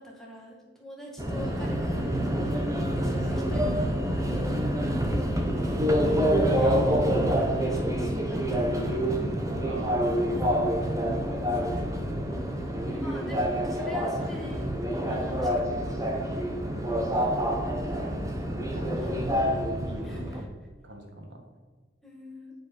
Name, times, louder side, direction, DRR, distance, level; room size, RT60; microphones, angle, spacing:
voice 1, 0.0-9.4 13.0-16.4 18.5-19.2 20.0-20.4 22.0-22.5, left 1 dB, ahead, -4 dB, 1.9 m, -44 dB
Subway metro underground, 1.2-20.4, equal, 20° right, 0.9 m, -27 dB
voice 2, 7.2-7.8 9.3-11.4 11.8-12.3 12.9-13.1 17.1-20.4 20.8-21.5, equal, 75° right, 3 dB, 1.6 m, -43 dB
9.9 x 5.5 x 6.0 m, 1.4 s
head